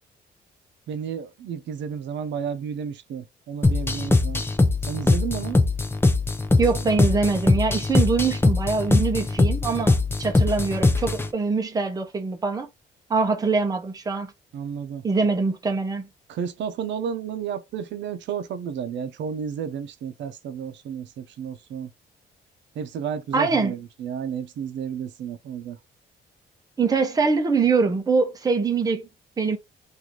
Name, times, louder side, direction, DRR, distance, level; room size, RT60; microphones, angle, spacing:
voice 1, 0.9-4.4 4.9-5.6 14.5-15.0 16.3-21.9 22.7-25.8, right 7 dB, 80° right, 0.6 m, -32 dB
sound 1, 3.6-11.3, left 3 dB, 10° left, 0.6 m, -21 dB
voice 2, 6.6-12.7 13.1-14.3 15.0-16.1 23.3-23.7 26.8-29.1 29.4-29.6, right 4 dB, 20° right, 0.8 m, -23 dB
3.1 x 2.6 x 3.8 m
cardioid pair, 155°, 19 cm